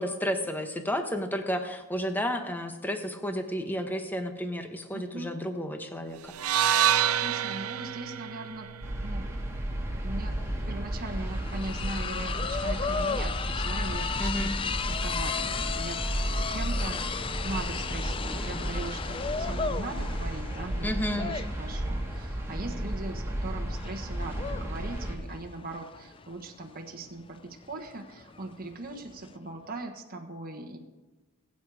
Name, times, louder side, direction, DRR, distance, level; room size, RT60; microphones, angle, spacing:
voice 1, 0.0-6.3 14.2-14.5 20.8-21.3, equal, 10° left, 6 dB, 1.0 m, -32 dB
voice 2, 4.9-5.3 7.2-8.7 9.0-9.3 10.0-10.4 10.6-17.2 17.4-30.8, right 2 dB, 40° right, 2 dB, 1.3 m, -40 dB
sound 1, 6.3-10.5, right 10 dB, 80° right, 0.6 m, -28 dB
sound 2, 8.8-25.1, right 1 dB, 10° right, 1.7 m, -33 dB
sound 3, 10.2-10.3 10.5-29.4, left 5 dB, 25° left, 0.3 m, -35 dB
21.0 x 8.5 x 4.9 m, 1.2 s
head